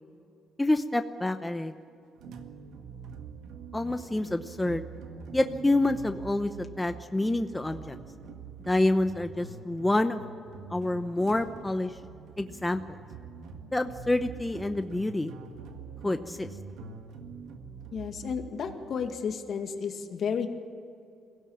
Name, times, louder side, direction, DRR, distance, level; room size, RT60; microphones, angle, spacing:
voice 1, 0.6-1.7 3.7-4.8 5.3-8.0 8.7-10.2 10.7-11.9 12.4-12.8 13.7-15.3 16.0-16.5, left 2 dB, 10° left, 8 dB, 0.9 m, -27 dB
sound 1, 2.2-19.1, right 5 dB, 85° right, 1.7 m, -45 dB
voice 2, 17.9-20.5, left 6 dB, 60° left, 6 dB, 2.1 m, -32 dB
22.5 x 17.0 x 8.8 m, 2.6 s
cardioid pair, 90°, 0 cm